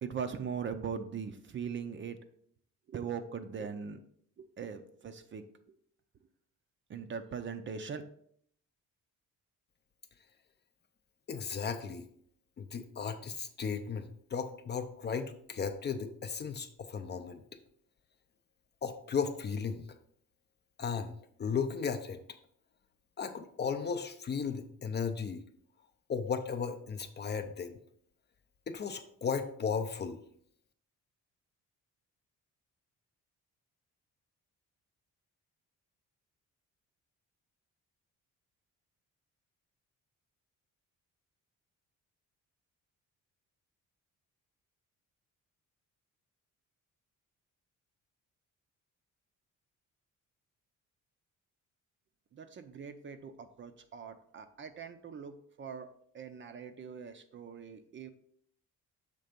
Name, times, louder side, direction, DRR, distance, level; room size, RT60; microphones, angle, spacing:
voice 1, 0.0-2.2 2.9-4.0 4.4-5.4 5.7-5.8 6.9-8.0 52.3-55.9 56.1-58.1, right 6 dB, 35° right, 9 dB, 0.5 m, -41 dB
voice 2, 11.3-12.1 12.6-17.4 18.8-19.9 20.8-21.1 21.4-22.2 23.2-25.4 26.1-27.8 28.7-30.2, left 6 dB, 35° left, 8 dB, 0.5 m, -35 dB
6.7 x 3.3 x 5.1 m, 0.65 s
cardioid pair, 145°, 32 cm